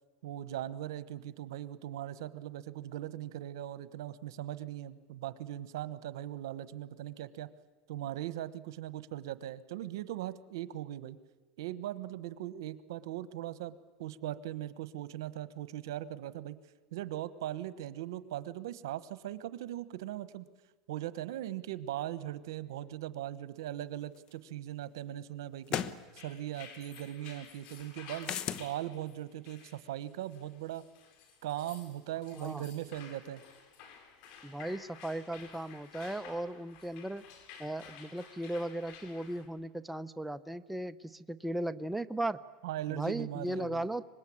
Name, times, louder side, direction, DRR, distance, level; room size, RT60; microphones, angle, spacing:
voice 1, 0.2-7.5 7.9-11.2 11.6-16.6 16.9-20.5 20.9-25.8 26.1-30.8 31.4-33.4 42.6-43.9, right 13 dB, 85° right, 14 dB, 1.2 m, -39 dB
sound 1, 24.3-24.4 25.7-26.0 28.2-28.7, left 10 dB, 40° left, 1.1 m, -34 dB
sound 2, 26.0-39.5, left 7 dB, 55° left, 4.0 m, -53 dB
voice 2, 32.3-32.6 34.4-37.2 37.6-42.4 42.9-44.1, right 1 dB, 5° right, 10 dB, 0.7 m, -37 dB
25.0 x 21.0 x 8.7 m, 1.3 s
supercardioid pair, 130°, 2 cm